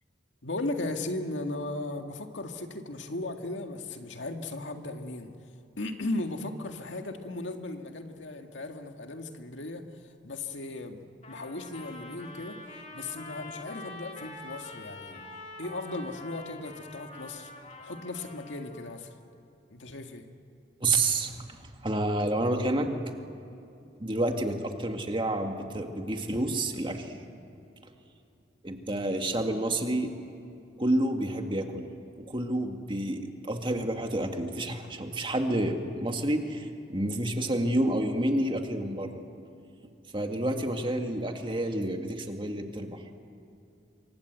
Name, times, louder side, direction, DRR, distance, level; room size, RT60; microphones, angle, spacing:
voice 1, 0.4-5.3 5.8-9.8 10.2-12.6 12.9-15.3 15.6-17.5 17.8-19.1 19.7-20.3, left 2 dB, 85° left, 5 dB, 1.9 m, -36 dB
Trumpet, 11.2-19.0, left 2 dB, 35° left, 2.7 m, -45 dB
voice 2, 20.8-23.1 24.0-27.2 28.6-30.1 30.8-31.9 32.3-39.2 40.1-43.0, right 1 dB, 25° right, 4 dB, 2.0 m, -29 dB
27.0 x 23.5 x 8.2 m, 2.7 s
head